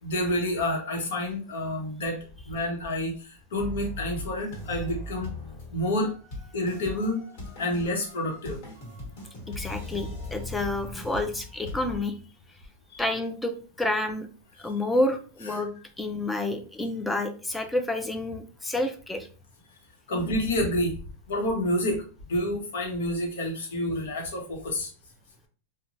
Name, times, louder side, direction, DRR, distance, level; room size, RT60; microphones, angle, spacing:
voice 1, 0.0-2.2 2.5-5.3 5.7-6.1 6.5-7.2 7.6-8.6 12.9-13.1 14.6-14.7 15.4-15.6 20.1-21.0 21.3-24.9, left 1 dB, 85° left, 2 dB, 0.9 m, -29 dB
sound 1, 3.6-12.0, left 2 dB, 50° left, 1.3 m, -39 dB
voice 2, 9.6-12.2 13.0-14.3 14.6-15.7 16.0-19.3, left 2 dB, 5° left, 6 dB, 0.3 m, -29 dB
3.0 x 2.2 x 2.5 m, 0.38 s
supercardioid pair, 160°, 0 cm